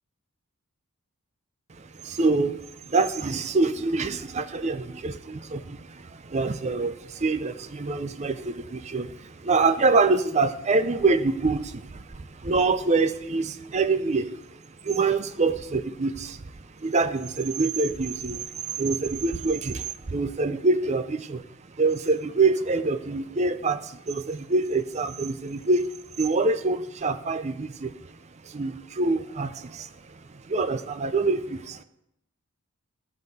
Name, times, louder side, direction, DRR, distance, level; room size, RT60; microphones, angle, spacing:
voice 1, 1.8-21.4 21.8-28.2 28.4-31.8, right 3 dB, 30° right, 0.5 m, -26 dB
13.5 x 5.5 x 7.7 m
head